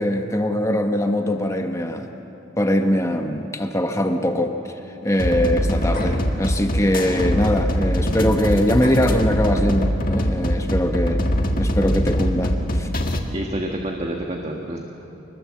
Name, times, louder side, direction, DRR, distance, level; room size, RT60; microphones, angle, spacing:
voice 1, 0.0-2.1 2.6-4.7 5.0-11.2 11.6-12.9, left 1 dB, 15° left, 5 dB, 1.0 m, -22 dB
sound 1, 5.2-13.2, equal, 45° left, 1.7 m, -23 dB
voice 2, 13.3-14.8, right 1 dB, 30° right, 1 dB, 1.6 m, -28 dB
25.5 x 20.5 x 7.5 m, 3.0 s
head